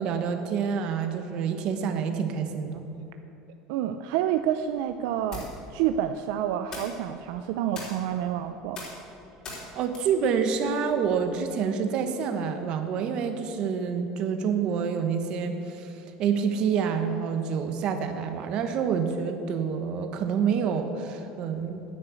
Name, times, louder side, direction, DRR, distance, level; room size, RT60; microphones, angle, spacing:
voice 1, 0.0-2.9 9.7-15.9 16.2-21.8, right 6 dB, 45° right, 7 dB, 1.2 m, -27 dB
voice 2, 3.7-8.8, right 10 dB, 75° right, 8 dB, 0.5 m, -28 dB
sound 1, 4.2-11.4, left 2 dB, 35° left, 3.5 m, -44 dB
10.0 x 8.8 x 8.2 m, 2.9 s
cardioid pair, 155°, 2 cm